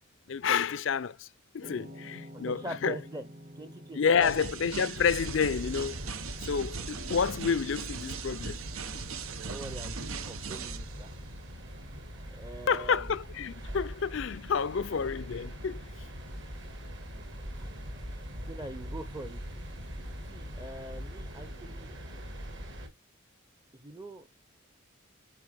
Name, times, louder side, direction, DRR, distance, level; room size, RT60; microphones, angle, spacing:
voice 1, 0.3-1.3 1.5-3.0 4.0-6.0 6.4-8.6 12.7-15.8, left 6 dB, 65° left, 0.5 m, -29 dB
sound 1, 1.6-19.9, equal, 40° right, 1.4 m, -53 dB
voice 2, 2.5-3.3 3.5-4.4 9.4-11.1 12.3-13.1 17.1-17.3 17.5-17.8 18.1-19.4 20.3-21.9 23.7-24.3, right 1 dB, 15° right, 0.6 m, -43 dB
sound 2, 4.2-11.1, right 5 dB, 90° right, 0.9 m, -40 dB
sound 3, 4.9-22.9, equal, 60° right, 2.0 m, -42 dB
8.5 x 3.7 x 3.4 m
head